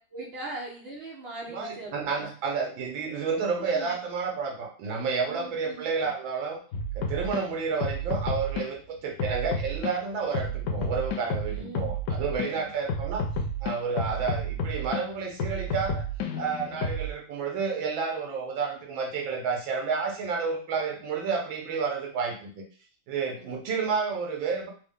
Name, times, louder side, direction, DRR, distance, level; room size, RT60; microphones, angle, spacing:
voice 1, 0.1-2.3 3.5-4.0 5.3-6.1 11.5-11.9 12.5-12.6 23.4-23.6, right 2 dB, 65° right, -3 dB, 0.6 m, -41 dB
voice 2, 1.5-6.6 6.9-13.3 13.6-16.0 16.4-22.6 23.1-24.7, right 5 dB, 80° right, 1 dB, 1.7 m, -30 dB
sound 1, 6.7-7.4 7.8-8.7 9.2-9.9 10.3-12.5 12.9-15.0 15.4-17.1, left 1 dB, 85° left, 0.7 m, -30 dB
4.2 x 2.1 x 3.5 m, 0.42 s
omnidirectional pair, 2.1 m